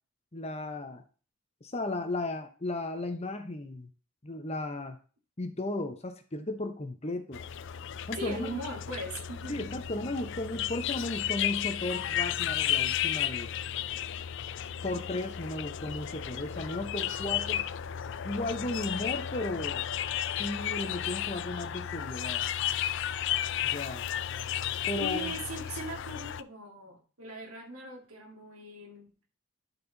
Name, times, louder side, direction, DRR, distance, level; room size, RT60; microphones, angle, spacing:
voice 1, 0.3-1.0 1.6-3.9 4.2-5.0 5.4-7.4 8.1-8.6 9.5-13.5 14.8-17.6 18.2-19.8 20.4-22.4 23.6-24.0 24.9-25.3, left 2 dB, 30° left, 6 dB, 0.9 m, -35 dB
sound 1, 7.3-26.4, left 11 dB, 55° left, 0.3 m, -33 dB
voice 2, 8.1-9.7 25.0-29.1, right 1 dB, 75° right, 1 dB, 2.3 m, -40 dB
10.5 x 4.3 x 4.0 m, 0.38 s
head